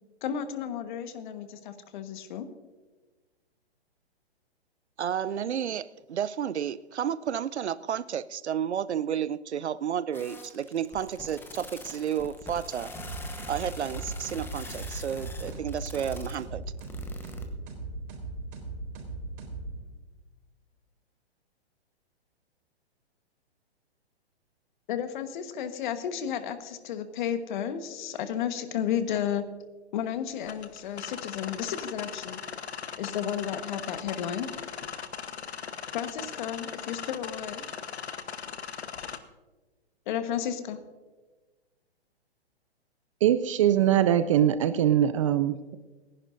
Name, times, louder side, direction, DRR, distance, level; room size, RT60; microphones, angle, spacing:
voice 1, 0.2-2.5 24.9-29.5 29.9-32.4 33.0-34.5 35.9-37.6 40.1-40.8, left 9 dB, 45° left, 9 dB, 1.4 m, -32 dB
voice 2, 5.0-12.9 13.5-16.6, right 9 dB, 85° right, 17 dB, 0.6 m, -31 dB
sound 1, 10.1-17.4, left 2 dB, 5° left, 1.1 m, -43 dB
sound 2, 13.0-20.1, right 2 dB, 55° right, 4.4 m, -38 dB
sound 3, 30.4-39.2, left 7 dB, 80° left, 1.1 m, -39 dB
voice 3, 43.2-45.8, right 10 dB, 30° right, 12 dB, 0.4 m, -22 dB
28.0 x 11.0 x 2.6 m, 1.3 s
hypercardioid pair, 130°, 33 cm